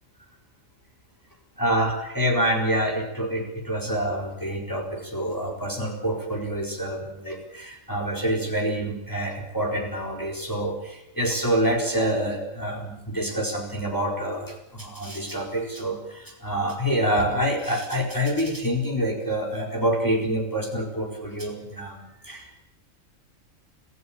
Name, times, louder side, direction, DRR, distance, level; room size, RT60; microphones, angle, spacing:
voice 1, 1.6-22.6, equal, 15° left, 0 dB, 4.4 m, -27 dB
26.5 x 15.5 x 8.7 m, 0.87 s
omnidirectional pair, 1.4 m